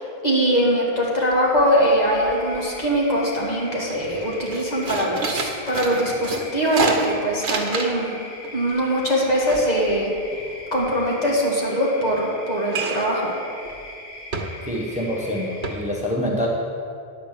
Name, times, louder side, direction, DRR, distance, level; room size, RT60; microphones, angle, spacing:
voice 1, 0.0-8.1 8.5-10.1 10.7-13.3, equal, 40° left, -4 dB, 1.9 m, -22 dB
sound 1, 1.0-1.1 1.3-1.9 2.1-3.0 3.4-3.5 3.9-8.2 8.4-10.9 12.7-13.2 13.6-13.8 14.3-14.9 15.2-15.3 15.6-15.7, right 3 dB, 85° right, 1.2 m, -29 dB
sound 2, 2.0-15.8, left 1 dB, 75° left, 1.6 m, -40 dB
voice 2, 14.7-16.5, equal, 5° right, -3 dB, 0.9 m, -26 dB
10.0 x 5.1 x 7.3 m, 2.5 s
omnidirectional pair, 1.0 m